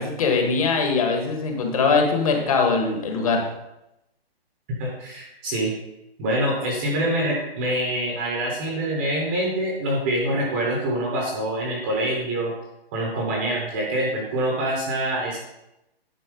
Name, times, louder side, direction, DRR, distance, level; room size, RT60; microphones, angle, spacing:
voice 1, 0.0-3.4, left 4 dB, 35° left, 2 dB, 1.4 m, -22 dB
voice 2, 4.8-5.7 6.2-12.5 12.9-15.4, right 1 dB, 10° right, -2 dB, 0.7 m, -25 dB
9.8 x 4.2 x 5.1 m, 0.89 s
hypercardioid pair, 165°, 31 cm